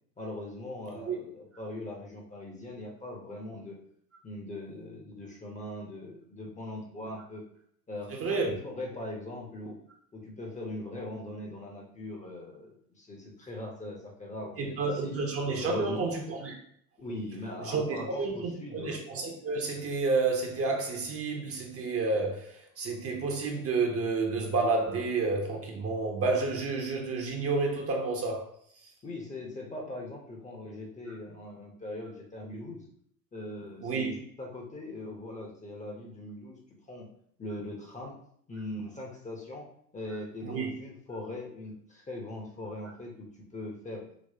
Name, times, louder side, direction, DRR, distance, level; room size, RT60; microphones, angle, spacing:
voice 1, 0.2-3.8 4.2-7.4 7.9-9.8 10.1-15.1 15.5-16.1 17.0-19.0 29.0-32.8 33.3-36.6 36.9-37.0 37.4-38.2 38.5-39.7 39.9-44.0, left 1 dB, 15° left, 0 dB, 0.8 m, -40 dB
voice 2, 8.1-8.5 14.6-16.5 17.6-22.5 22.8-28.5 33.8-34.1 40.4-40.7, right 3 dB, 30° right, 1 dB, 0.9 m, -30 dB
5.2 x 3.0 x 2.7 m, 0.65 s
figure-of-eight pair, 70°, 48 cm